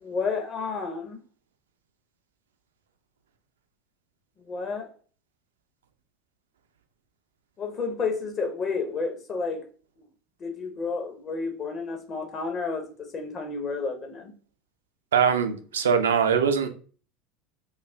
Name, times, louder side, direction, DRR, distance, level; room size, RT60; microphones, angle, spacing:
voice 1, 0.0-1.2 4.4-4.9 7.6-9.6 10.4-14.3, left 4 dB, 35° left, 0.6 m, -31 dB
voice 2, 15.1-16.7, right 7 dB, 70° right, 0.4 m, -22 dB
2.3 x 2.3 x 3.2 m
figure-of-eight pair, 75°, 0 cm